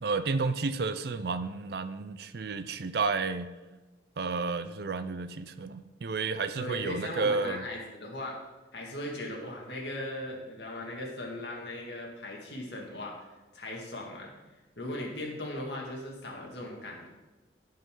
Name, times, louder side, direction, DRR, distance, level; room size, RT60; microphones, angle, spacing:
voice 1, 0.0-3.5 4.2-7.7, right 4 dB, 60° right, 12 dB, 0.5 m, -31 dB
voice 2, 6.6-8.3 8.7-14.3 14.8-17.1, left 1 dB, 70° left, -1 dB, 2.1 m, -38 dB
15.5 x 5.5 x 3.8 m, 1.2 s
head